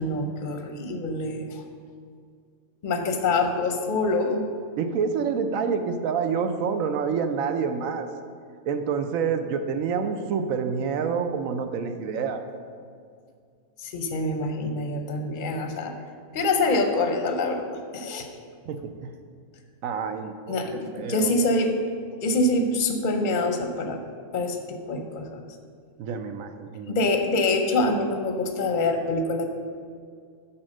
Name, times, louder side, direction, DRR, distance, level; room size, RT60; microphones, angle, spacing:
voice 1, 0.0-1.6 2.8-4.5 13.8-15.9 16.3-18.3 20.5-21.7 22.2-24.0 24.3-25.4 26.9-29.5, left 2 dB, 50° left, 5 dB, 0.7 m, -25 dB
voice 2, 4.8-8.1 8.7-12.4 18.7-19.1 19.8-20.6 20.9-21.3 26.0-27.0, right 6 dB, 80° right, 8 dB, 1.1 m, -27 dB
8.6 x 4.4 x 6.5 m, 2.2 s
omnidirectional pair, 1.4 m